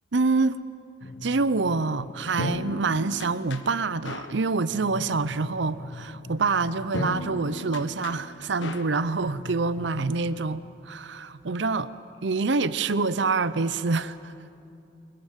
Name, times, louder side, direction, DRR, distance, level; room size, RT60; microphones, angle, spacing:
voice 1, 0.1-0.6 1.2-11.9 12.2-14.3, right 3 dB, 70° right, 0.7 m, -26 dB
sound 1, 1.0-10.3, left 2 dB, 80° left, 1.2 m, -37 dB
23.0 x 22.0 x 7.5 m
head